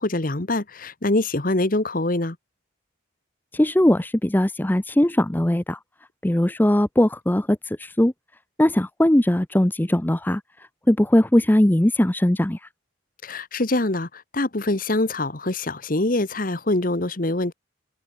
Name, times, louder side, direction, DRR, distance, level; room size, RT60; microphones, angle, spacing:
voice 1, 0.0-2.4 13.2-17.5, left 2 dB, 45° left, 1.3 m, -24 dB
voice 2, 3.5-5.8 6.2-8.1 8.6-10.4 10.9-12.6, left 1 dB, 10° left, 0.5 m, -20 dB
head